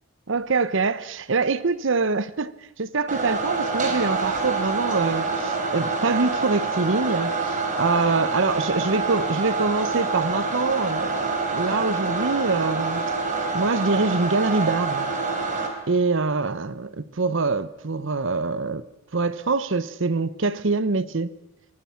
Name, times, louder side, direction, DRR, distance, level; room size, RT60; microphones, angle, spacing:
voice 1, 0.3-2.5 2.8-13.1 13.5-15.1 15.9-18.9 19.1-21.3, right 3 dB, 65° right, 0.8 m, -24 dB
sound 1, 3.1-15.7, right 3 dB, 40° right, 4.2 m, -26 dB
25.0 x 23.5 x 5.7 m
head